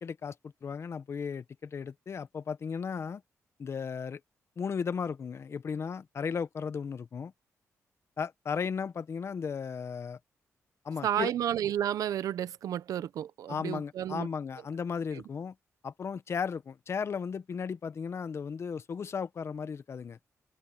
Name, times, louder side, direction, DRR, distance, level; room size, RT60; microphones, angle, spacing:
voice 1, 0.0-3.2 3.6-4.2 4.6-7.3 8.2-10.2 10.8-11.3 13.5-15.5 15.8-20.2, left 6 dB, 50° left, 1.0 m, -35 dB
voice 2, 11.0-14.3 15.1-15.2, right 10 dB, 85° right, 0.9 m, -31 dB
cardioid pair, 110°, 6 cm